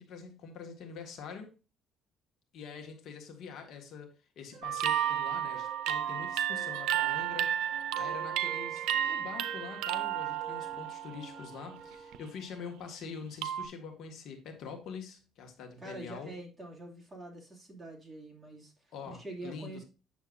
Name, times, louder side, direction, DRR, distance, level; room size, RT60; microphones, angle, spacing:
voice 1, 0.0-1.5 2.5-16.3 18.9-19.8, left 5 dB, 60° left, 1.7 m, -45 dB
sound 1, 4.5-12.2, right 2 dB, 30° right, 4.8 m, -51 dB
sound 2, 4.6-11.5 11.9-12.3 13.4-13.6, right 11 dB, 85° right, 0.6 m, -32 dB
voice 2, 15.8-19.8, right 2 dB, 15° right, 2.5 m, -45 dB
8.4 x 6.9 x 2.6 m
cardioid pair, 130°, 0 cm